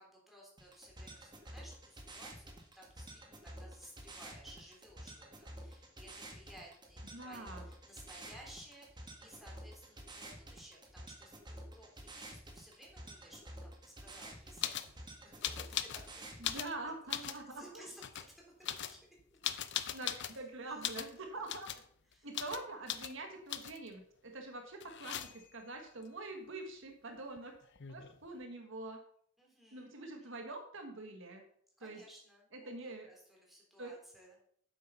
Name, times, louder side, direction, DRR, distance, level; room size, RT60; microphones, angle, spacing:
voice 1, 0.0-16.3 17.2-19.4 20.3-20.8 21.3-21.4 22.1-22.3 22.7-22.8 29.4-30.3 31.8-34.3, equal, ahead, -3 dB, 3.4 m, -58 dB
sound 1, 0.6-16.6, right 1 dB, 20° right, 1.6 m, -50 dB
voice 2, 7.1-7.7 16.4-17.9 19.9-21.7 22.2-27.6 27.9-29.0 29.7-31.4 31.8-32.0 32.5-33.1 33.8-33.9, right 2 dB, 65° right, 4 dB, 1.7 m, -45 dB
sound 2, 14.6-14.9 15.4-16.1 16.4-17.4 18.0-18.3 18.6-20.4 20.8-21.1 21.5-21.8 22.3-22.6 22.9-23.1 23.5-23.9 24.8-25.6 27.4-27.5 27.6-28.2, left 10 dB, 60° left, 0.7 m, -39 dB
8.7 x 7.6 x 5.7 m, 0.63 s
head